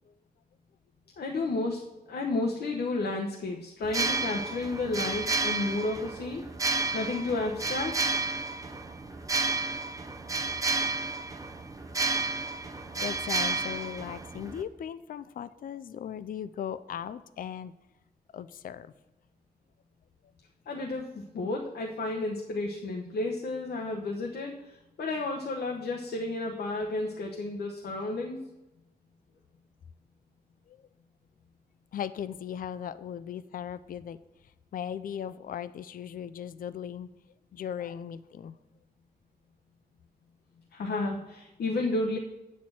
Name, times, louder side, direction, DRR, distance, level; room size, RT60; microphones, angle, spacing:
voice 1, 1.2-1.8 2.1-6.4 6.9-8.1 20.7-28.4 40.7-42.2, left 2 dB, 80° left, 0 dB, 1.0 m, -32 dB
sound 1, 3.8-14.6, right 3 dB, 20° right, 0.6 m, -31 dB
voice 2, 12.6-17.7 18.3-18.9 22.0-22.1 30.7-30.8 31.9-34.2 34.7-37.1 37.5-38.5, left 9 dB, 60° left, 14 dB, 0.4 m, -38 dB
9.2 x 4.2 x 7.4 m, 1.0 s
wide cardioid pair, 170°, 17 cm